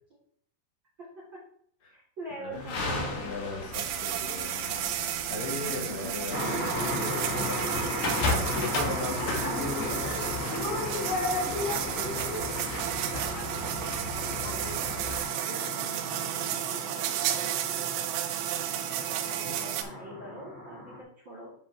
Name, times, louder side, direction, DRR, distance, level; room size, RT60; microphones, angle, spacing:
voice 1, 1.0-1.5 1.9-3.5 14.3-17.9 19.1-21.5, right 1 dB, 40° right, -5 dB, 2.0 m, -45 dB
sound 1, 2.5-15.2, left 2 dB, 90° left, 3.6 m, -34 dB
voice 2, 3.1-4.7 5.2-7.6 8.5-12.7 18.7-19.1, left 3 dB, 60° left, -2 dB, 3.2 m, -39 dB
sound 2, 3.7-19.8, right 11 dB, 90° right, 2.8 m, -33 dB
sound 3, 6.3-21.0, equal, 35° left, 1.3 m, -36 dB
10.5 x 5.0 x 3.4 m, 0.63 s
omnidirectional pair, 4.7 m